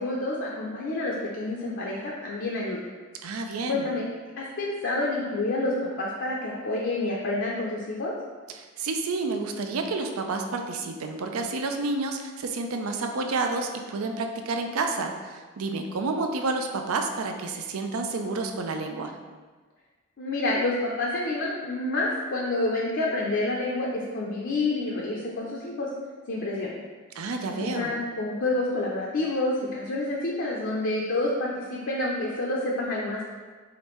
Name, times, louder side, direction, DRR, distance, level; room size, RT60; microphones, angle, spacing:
voice 1, 0.0-2.8 3.7-4.1 4.4-8.1 20.2-25.9 26.3-26.7 27.5-33.3, left 2 dB, 55° left, -3 dB, 0.5 m, -28 dB
voice 2, 3.2-3.9 8.5-19.1 27.2-27.9, right 3 dB, 80° right, 5 dB, 0.5 m, -30 dB
5.0 x 3.1 x 3.0 m, 1.4 s
head